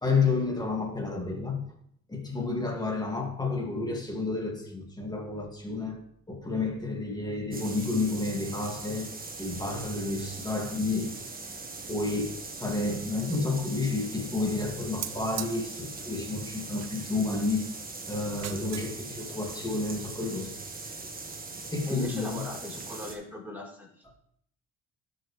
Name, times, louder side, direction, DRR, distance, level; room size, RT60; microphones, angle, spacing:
voice 1, 0.0-1.6 2.1-6.0 6.3-9.1 9.4-11.2 11.9-17.7 18.1-20.5 21.7-22.4, left 3 dB, 15° left, 1 dB, 2.2 m, -30 dB
sound 1, 7.5-23.1, right 3 dB, 30° right, 1.3 m, -41 dB
sound 2, 15.0-15.5 16.8-17.2 18.3-18.9 19.2-19.3, right 11 dB, 60° right, 0.6 m, -39 dB
voice 2, 21.9-24.2, left 1 dB, 5° right, -3 dB, 3.9 m, -39 dB
12.0 x 5.3 x 3.3 m, 0.67 s
cardioid pair, 90°, 30 cm